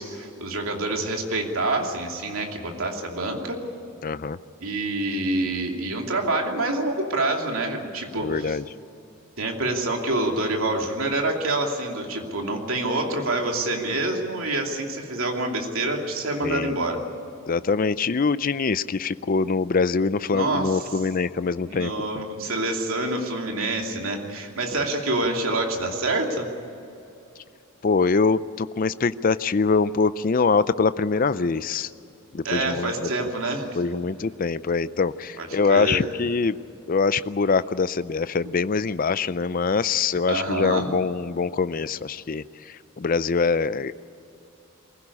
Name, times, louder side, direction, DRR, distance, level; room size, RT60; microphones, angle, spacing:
voice 1, 0.0-3.6 4.6-8.6 9.4-17.0 20.3-20.8 21.6-26.5 32.4-33.7 35.4-36.0 40.3-40.9, right 2 dB, 70° right, 2 dB, 2.7 m, -27 dB
voice 2, 4.0-4.4 8.2-8.7 16.4-16.7 17.5-21.9 27.8-31.9 32.3-33.3 33.8-36.6 36.9-43.9, left 4 dB, 40° left, 15 dB, 0.5 m, -24 dB
23.0 x 16.0 x 9.8 m, 2.8 s
head